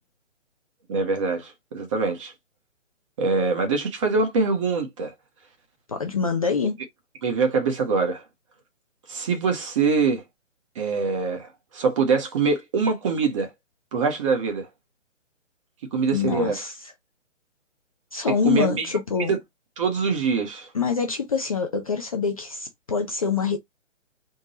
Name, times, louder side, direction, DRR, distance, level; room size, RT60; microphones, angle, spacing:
voice 1, 0.9-2.3 3.2-5.1 7.2-8.2 9.1-10.2 10.8-13.5 13.9-14.7 15.9-16.6 18.4-18.9 19.3-19.4 19.8-20.7, right 4 dB, 25° right, 0.9 m, -24 dB
voice 2, 5.9-6.8 16.1-16.7 18.1-19.3 20.7-23.6, left 5 dB, 30° left, 0.5 m, -25 dB
3.7 x 2.1 x 4.0 m
figure-of-eight pair, 145°, 37 cm